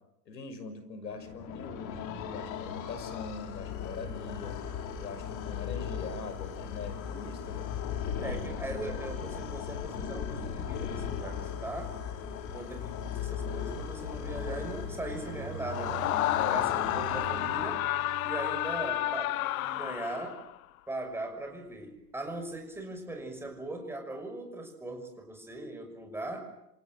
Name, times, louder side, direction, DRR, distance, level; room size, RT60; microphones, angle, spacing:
voice 1, 0.3-4.6 4.9-7.7 16.3-16.6, left 4 dB, 80° left, 12 dB, 6.2 m, -42 dB
sound 1, 1.1-18.1, left 7 dB, 35° left, 3.8 m, -38 dB
voice 2, 8.2-12.0 12.5-17.8 18.2-20.4 20.9-26.5, right 2 dB, 5° right, 4 dB, 6.1 m, -39 dB
sound 2, 14.5-19.6, right 13 dB, 65° right, 6.9 m, -45 dB
Screaming, 15.6-20.5, left 15 dB, 55° left, 0.9 m, -31 dB
28.5 x 27.5 x 7.7 m, 0.87 s
hypercardioid pair, 120°, 49 cm